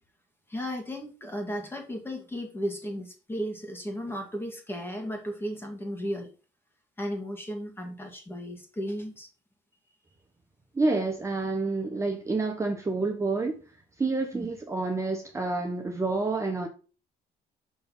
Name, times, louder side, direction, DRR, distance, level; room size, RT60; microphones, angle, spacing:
voice 1, 0.5-6.3 7.0-9.3 14.3-14.5, equal, 15° left, 1.8 m, -35 dB
voice 2, 10.7-13.5 14.0-16.7, right 3 dB, 15° right, 1.0 m, -28 dB
6.4 x 3.4 x 5.4 m
cardioid pair, 110°, 17 cm